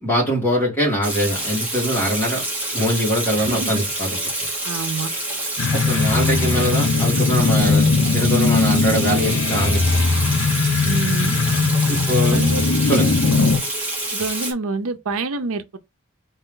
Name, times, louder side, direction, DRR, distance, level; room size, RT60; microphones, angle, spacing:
voice 1, 0.0-2.4 2.7-4.2 5.7-7.9 8.1-10.0 11.9-12.4 12.8-13.2, equal, 10° left, 2.2 m, -22 dB
Water tap faucet / Sink (filling or washing), 1.0-14.5, right 2 dB, 5° right, 1.3 m, -27 dB
voice 2, 3.4-3.8 4.6-5.1 10.8-11.3 12.2-12.6 13.2-13.5 14.1-15.8, right 3 dB, 80° right, 0.6 m, -27 dB
sound 1, 5.6-13.6, left 4 dB, 70° left, 0.6 m, -19 dB
4.4 x 2.9 x 3.8 m
head